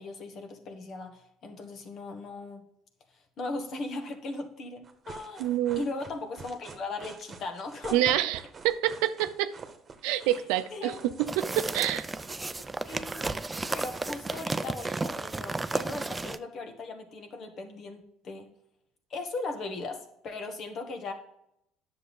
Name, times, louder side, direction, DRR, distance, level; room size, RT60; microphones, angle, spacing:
voice 1, 0.0-2.6 3.4-8.1 10.1-10.3 10.7-11.0 12.9-13.4 13.7-18.5 19.1-21.1, left 3 dB, 55° left, 5 dB, 1.6 m, -38 dB
sound 1, 4.8-14.9, right 5 dB, 35° right, 1.3 m, -47 dB
voice 2, 5.4-5.8 7.9-8.4 8.6-9.5 10.0-12.1, right 13 dB, 80° right, 12 dB, 0.6 m, -27 dB
sound 2, 11.3-16.4, right 3 dB, 15° right, 0.5 m, -33 dB
9.7 x 6.9 x 3.8 m, 0.76 s
supercardioid pair, 85°, 0 cm